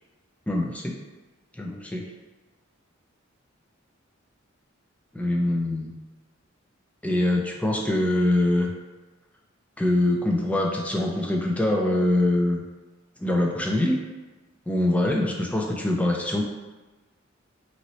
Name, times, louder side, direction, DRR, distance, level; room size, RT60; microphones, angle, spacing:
voice 1, 0.5-1.0 1.5-2.1 5.1-5.9 7.0-8.7 9.8-12.6 13.2-14.0 14.7-16.4, left 1 dB, 5° left, 0 dB, 0.3 m, -24 dB
3.0 x 2.8 x 2.8 m, 1.2 s
head